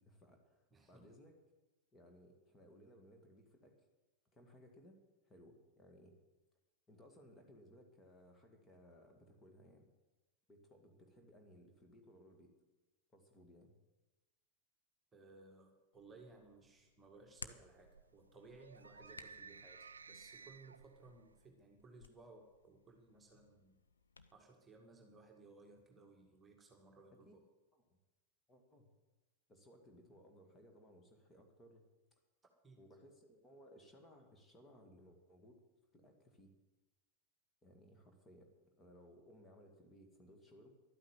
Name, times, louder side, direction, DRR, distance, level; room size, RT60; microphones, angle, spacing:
voice 1, 0.0-1.4 1.9-3.9 4.3-5.0 5.2-6.2 6.9-9.9 10.5-12.5 13.1-13.7 27.1-27.3 27.7-28.0 28.5-28.9 29.5-31.8 32.1-32.2 32.8-35.6 35.9-36.5 37.6-40.7, equal, 15° left, 3 dB, 2.3 m, -62 dB
voice 2, 0.7-1.1 15.1-23.8 24.3-27.4 32.6-32.8, right 3 dB, 15° right, 1 dB, 1.9 m, -60 dB
Hands, 15.9-24.3, left 4 dB, 75° left, 0.7 m, -59 dB
sound 1, 17.5-21.5, right 5 dB, 75° right, 0.4 m, -57 dB
12.0 x 8.9 x 9.2 m, 1.1 s
figure-of-eight pair, 90°, 0 cm